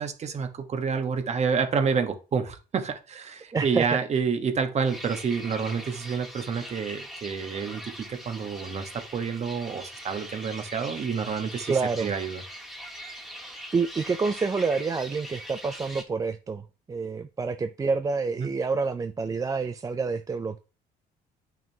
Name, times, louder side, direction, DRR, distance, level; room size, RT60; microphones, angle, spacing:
voice 1, 0.0-12.4 18.4-18.5, right 6 dB, 40° right, 1.2 m, -29 dB
voice 2, 3.5-3.9 11.7-12.1 13.7-20.6, right 4 dB, 20° right, 0.4 m, -28 dB
sound 1, 4.8-16.0, equal, ahead, 1.6 m, -42 dB
8.9 x 6.0 x 2.8 m
cardioid pair, 110°, 17 cm